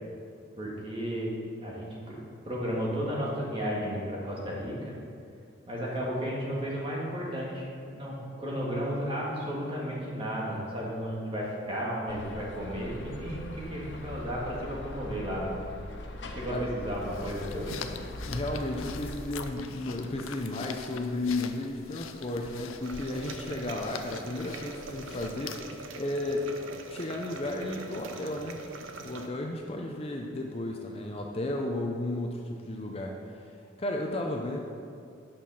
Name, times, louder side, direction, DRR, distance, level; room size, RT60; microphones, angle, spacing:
voice 1, 0.6-2.2 2.4-4.9 5.7-7.7 7.9-15.6 16.2-17.8, equal, 25° right, -5 dB, 1.8 m, -33 dB
sound 1, 12.1-19.1, left 1 dB, 60° left, 0.8 m, -41 dB
sound 2, 16.8-25.8, left 6 dB, 85° left, 0.5 m, -43 dB
voice 2, 18.3-26.5 26.9-28.6 29.0-33.5 33.8-34.6, left 1 dB, 30° left, 1 dB, 0.5 m, -33 dB
sound 3, 22.8-29.3, right 3 dB, 80° right, 0.7 m, -43 dB
8.9 x 5.8 x 5.5 m, 2.4 s
head